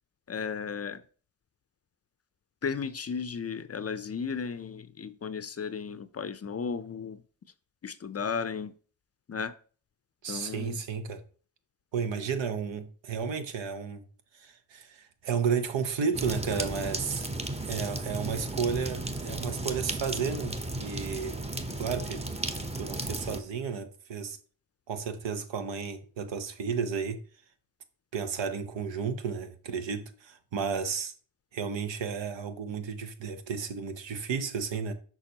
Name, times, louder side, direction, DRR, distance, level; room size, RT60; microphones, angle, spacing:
voice 1, 0.3-1.0 2.6-7.2 7.8-8.7 9.3-9.5 10.3-10.8, left 6 dB, 35° left, 0.5 m, -34 dB
voice 2, 10.2-11.2 11.9-14.0 14.3-17.3 17.6-21.4 21.8-22.2 22.8-24.4 24.9-27.2 28.1-31.1 31.5-34.9, right 6 dB, 75° right, 0.9 m, -33 dB
sound 1, 16.1-23.4, right 2 dB, 15° right, 0.8 m, -34 dB
6.0 x 5.6 x 2.8 m
supercardioid pair, 45°, 45 cm